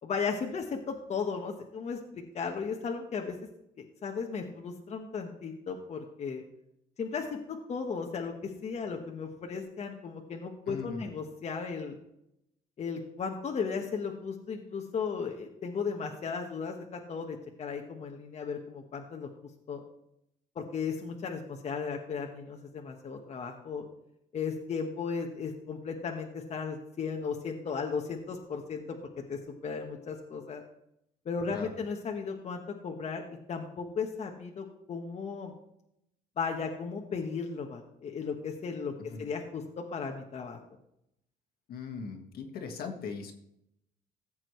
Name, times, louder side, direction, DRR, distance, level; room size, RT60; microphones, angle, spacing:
voice 1, 0.0-3.4 3.8-6.4 7.0-12.0 12.8-19.3 19.7-19.8 20.5-23.8 24.3-29.0 29.3-30.6 31.2-33.2 33.5-35.5 36.4-40.6, left 5 dB, 40° left, 2 dB, 1.3 m, -36 dB
voice 2, 10.7-11.1 31.5-31.8 39.1-39.3 41.7-43.3, left 5 dB, 65° left, 4 dB, 1.7 m, -39 dB
15.5 x 7.5 x 3.2 m, 0.79 s
cardioid pair, 110°, 17 cm